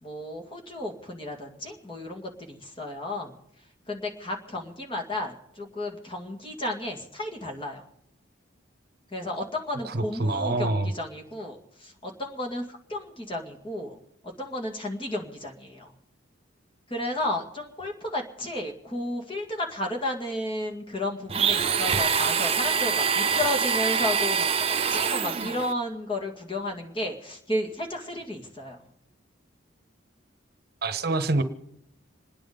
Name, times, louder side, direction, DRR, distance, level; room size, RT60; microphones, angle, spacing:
voice 1, 0.0-3.3 3.9-7.8 9.1-15.9 16.9-28.8, left 1 dB, 25° left, 2 dB, 2.3 m, -33 dB
voice 2, 9.8-10.9 30.8-31.4, right 2 dB, 50° right, 9 dB, 1.1 m, -26 dB
Domestic sounds home sounds, 21.3-25.7, right 6 dB, 30° right, 0.6 m, -25 dB
26.5 x 9.9 x 5.3 m, 0.77 s
head